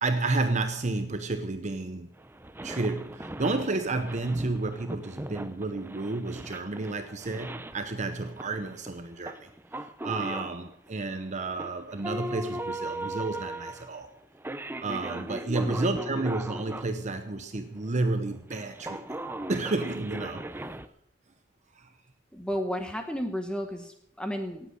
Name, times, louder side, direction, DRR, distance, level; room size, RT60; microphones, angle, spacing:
voice 1, 0.0-2.1 2.6-9.5 10.0-14.1 14.8-19.0 19.5-20.5 21.7-21.9, right 2 dB, 40° right, 8 dB, 0.9 m, -31 dB
sound 1, 1.6-1.7 2.2-16.9 17.3-20.9, right 1 dB, 10° right, 0.6 m, -39 dB
voice 2, 15.1-16.0 22.3-24.8, equal, 5° left, 5 dB, 1.0 m, -33 dB
17.5 x 7.9 x 6.6 m, 0.73 s
head